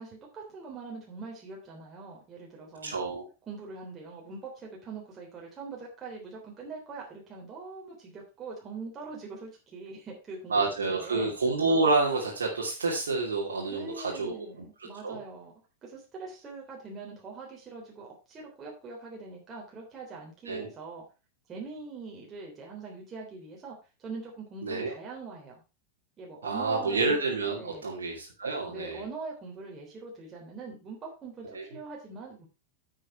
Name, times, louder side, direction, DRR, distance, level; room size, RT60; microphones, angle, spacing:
voice 1, 0.0-3.0 3.5-10.5 10.9-11.3 13.7-15.5 15.8-21.0 21.5-25.6 26.2-27.1 27.6-27.9 28.7-32.5, right 4 dB, 25° right, -2 dB, 3.5 m, -43 dB
voice 2, 2.8-3.3 10.5-14.5 15.0-15.2 20.5-20.7 24.6-24.9 26.4-29.0 31.5-31.6, right 3 dB, 70° right, -3 dB, 2.6 m, -28 dB
9.9 x 7.7 x 4.4 m, 0.30 s
figure-of-eight pair, 90°, 0 cm